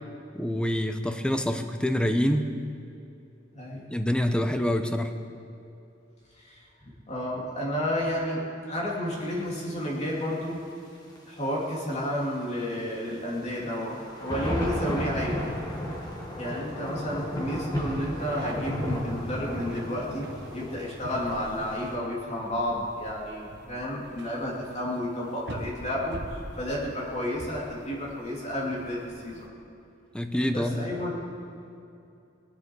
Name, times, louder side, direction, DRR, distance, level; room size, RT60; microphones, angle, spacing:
voice 1, 0.3-2.5 3.9-5.1 30.1-30.8, equal, 5° left, 7 dB, 0.7 m, -26 dB
voice 2, 3.5-3.9 6.4-10.6 11.3-15.5 16.4-26.2 26.6-29.5 30.5-31.2, left 1 dB, 35° left, -4 dB, 2.9 m, -31 dB
sound 1, 11.2-11.3 11.9-12.0 13.9-22.0, equal, 20° left, 2.0 m, -33 dB
sound 2, 18.2-29.5, right 1 dB, 65° right, 1.3 m, -45 dB
20.0 x 10.5 x 4.7 m, 2.6 s
head